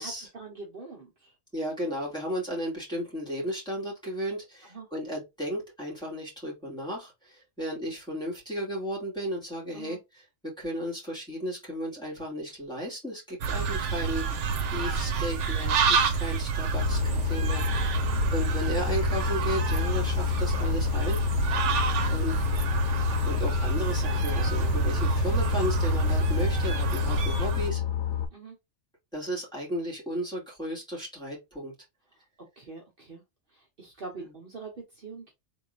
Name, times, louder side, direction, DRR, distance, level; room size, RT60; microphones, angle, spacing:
voice 1, 0.0-1.3 4.6-4.9 9.7-10.0 18.0-18.3 22.0-22.2 27.1-27.2 28.3-28.6 32.6-33.2 33.5-35.3, right 4 dB, 50° right, 1.2 m, -44 dB
voice 2, 1.5-14.3 14.7-18.0 18.3-21.2 22.1-22.4 23.2-27.8 29.1-31.7 34.2-34.3, equal, 5° left, 2.5 m, -34 dB
sound 1, 13.4-27.7, right 6 dB, 90° right, 1.0 m, -28 dB
Boat Water vehicle, 16.7-28.3, left 11 dB, 90° left, 1.1 m, -29 dB
3.8 x 3.6 x 2.5 m
omnidirectional pair, 1.2 m